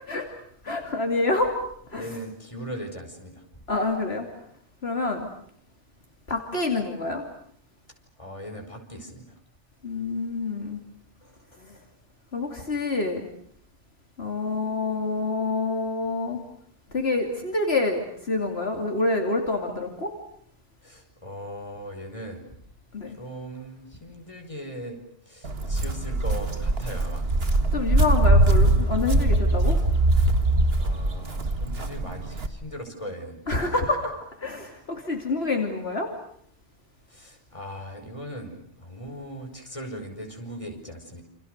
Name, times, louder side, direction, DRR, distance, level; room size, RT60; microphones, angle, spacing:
voice 1, 0.6-1.6 1.9-2.1 3.7-4.3 4.8-5.3 6.3-7.2 9.8-10.8 11.7-11.8 12.3-13.3 14.2-16.4 16.9-20.1 22.9-23.1 27.7-29.8 33.5-34.1 34.4-36.1, left 3 dB, 65° left, 3 dB, 3.1 m, -27 dB
voice 2, 2.0-3.4 8.2-9.3 20.8-22.4 23.1-25.0 25.3-27.3 30.8-33.4 37.1-41.2, equal, 30° left, 3 dB, 5.5 m, -39 dB
Walk footsteps, 25.4-32.5, right 2 dB, 60° right, 2.1 m, -22 dB
29.0 x 27.5 x 6.6 m, 0.68 s
omnidirectional pair, 1.1 m